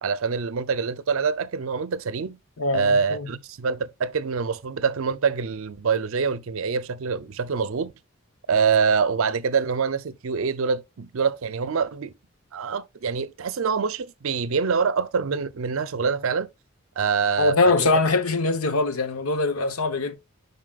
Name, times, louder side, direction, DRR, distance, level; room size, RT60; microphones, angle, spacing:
voice 1, 0.0-2.4 2.7-7.9 8.5-12.1 12.5-16.5 17.0-17.9, right 5 dB, 70° right, 0.5 m, -25 dB
voice 2, 2.6-3.3 17.4-20.2, left 3 dB, 85° left, 0.9 m, -22 dB
7.5 x 5.4 x 2.3 m
head